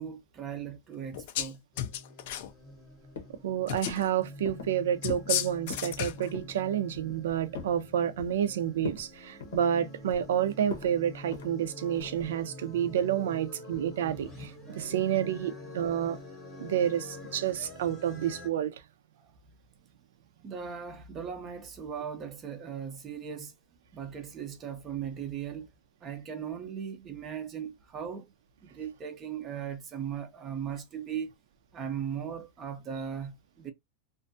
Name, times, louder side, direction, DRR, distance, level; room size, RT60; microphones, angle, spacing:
voice 1, 0.0-1.6 19.2-19.3 20.4-23.6 23.9-25.7 26.0-28.3 28.7-31.3 31.7-33.7, right 8 dB, 20° right, 0.4 m, -38 dB
sound 1, 1.1-1.5 1.8-2.5 3.7-4.1 5.0-6.3, left 11 dB, 50° left, 0.3 m, -33 dB
sound 2, 1.7-18.5, left 1 dB, 15° left, 0.8 m, -47 dB
sound 3, 2.3-2.9 3.2-3.5 3.9-4.1 4.5-4.8 5.1-5.3 5.6-5.9 6.3-6.6 6.9-7.8 8.2-8.5 8.8-9.1 9.4-10.3 10.7-10.9 11.3-11.5 12.0-12.3, left 6 dB, 90° left, 0.8 m, -41 dB
voice 2, 3.4-16.2 16.6-18.8, right 10 dB, 85° right, 0.4 m, -29 dB
2.5 x 2.3 x 2.5 m
supercardioid pair, 175°, 0 cm